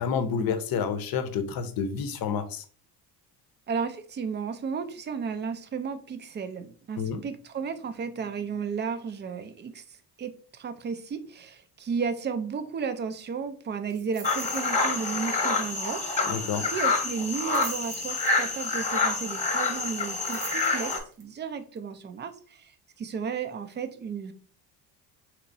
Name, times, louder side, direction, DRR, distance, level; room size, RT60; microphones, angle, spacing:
voice 1, 0.0-2.6 7.0-7.2 16.3-16.7, left 6 dB, 45° left, 0.7 m, -29 dB
voice 2, 3.7-24.3, right 6 dB, 25° right, 0.4 m, -34 dB
sound 1, 13.9-14.7 15.0-15.3 15.6-15.7 17.2-18.6 19.9-21.2 21.8-21.9, right 6 dB, 70° right, 1.0 m, -44 dB
sound 2, 14.2-21.0, left 3 dB, 15° left, 1.0 m, -27 dB
3.3 x 3.0 x 2.6 m
hypercardioid pair, 65°, 49 cm